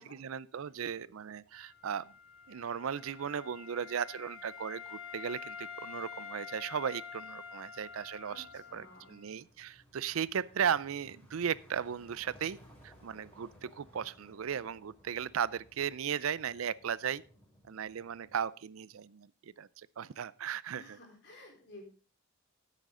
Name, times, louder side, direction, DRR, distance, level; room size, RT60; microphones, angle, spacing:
voice 1, 0.0-2.1 2.5-12.6 12.8-17.2 17.6-21.0, right 8 dB, 80° right, 20 dB, 0.5 m, -36 dB
sound 1, 0.6-18.4, equal, 10° left, 4.8 m, -63 dB
Wind instrument woodwind instrument, 1.5-9.3, left 6 dB, 90° left, 4.8 m, -47 dB
voice 2, 8.3-9.2 20.8-21.9, left 2 dB, 55° left, 1 dB, 3.9 m, -53 dB
14.0 x 8.3 x 3.8 m, 0.37 s
head